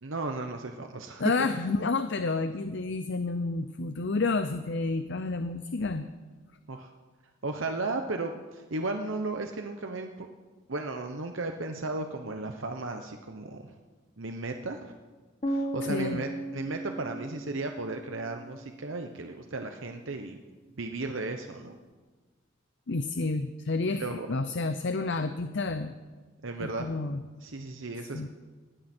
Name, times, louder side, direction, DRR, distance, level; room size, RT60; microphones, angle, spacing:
voice 1, 0.0-1.3 6.7-6.9 7.4-10.3 10.7-13.7 14.2-14.9 15.5-20.4 20.8-21.8 24.0-24.3 26.4-26.9 27.4-28.3, right 2 dB, 65° right, 5 dB, 1.0 m, -35 dB
voice 2, 1.2-6.1 15.9-16.2 22.9-25.9 26.6-27.2 28.1-28.3, left 3 dB, 55° left, 10 dB, 0.6 m, -30 dB
sound 1, 15.4-19.3, right 1 dB, 25° left, 1.1 m, -36 dB
19.5 x 16.0 x 4.5 m, 1.3 s
head